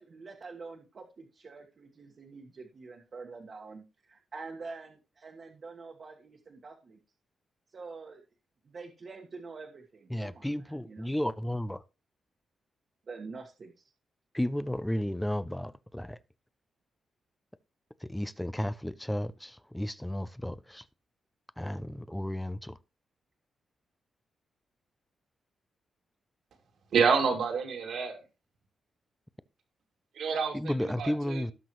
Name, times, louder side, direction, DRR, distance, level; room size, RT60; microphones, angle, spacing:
voice 1, 0.0-7.0 7.7-8.2 8.6-11.1 13.1-13.8, right 4 dB, 45° right, 1.5 m, -46 dB
voice 2, 10.1-11.8 14.3-16.2 18.0-20.8 21.6-22.8 30.5-31.5, left 1 dB, 5° left, 0.5 m, -33 dB
voice 3, 26.9-28.2 30.2-31.5, right 5 dB, 75° right, 2.5 m, -28 dB
17.5 x 6.0 x 3.1 m
cardioid pair, 120°, 0 cm